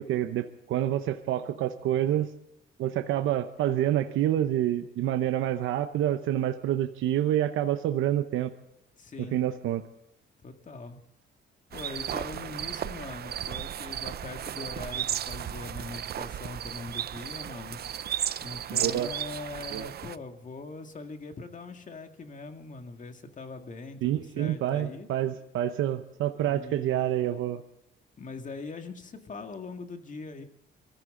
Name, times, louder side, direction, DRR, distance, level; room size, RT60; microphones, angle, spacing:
voice 1, 0.0-2.3 2.8-8.5 9.2-9.9 18.7-19.1 19.7-19.9 24.0-27.6, right 12 dB, 85° right, 8 dB, 0.8 m, -27 dB
voice 2, 9.0-9.4 10.4-11.0 11.7-17.8 18.4-25.1 26.4-27.4 28.2-30.5, left 3 dB, 40° left, 5 dB, 2.1 m, -42 dB
sound 1, 11.7-20.2, right 10 dB, 55° right, 0.6 m, -34 dB
24.0 x 14.5 x 3.8 m, 0.83 s
cardioid pair, 90°, 20 cm